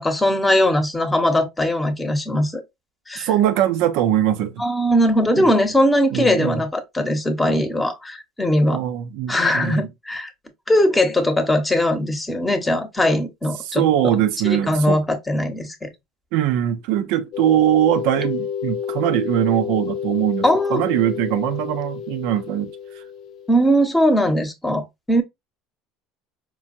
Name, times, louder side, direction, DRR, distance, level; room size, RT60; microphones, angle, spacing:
voice 1, 0.0-2.6 3.1-3.3 4.6-8.8 9.3-10.3 10.7-13.8 14.1-14.2 14.4-15.9 20.4-20.8 23.5-25.2, equal, 10° left, 0.9 m, -20 dB
voice 2, 3.2-4.6 5.4-5.5 6.1-6.6 8.7-9.9 13.6-15.0 16.3-20.5 20.7-22.7, right 11 dB, 75° right, 0.6 m, -21 dB
sound 1, 17.3-23.9, left 8 dB, 55° left, 0.5 m, -30 dB
4.6 x 2.2 x 2.6 m
supercardioid pair, 95°, 0 cm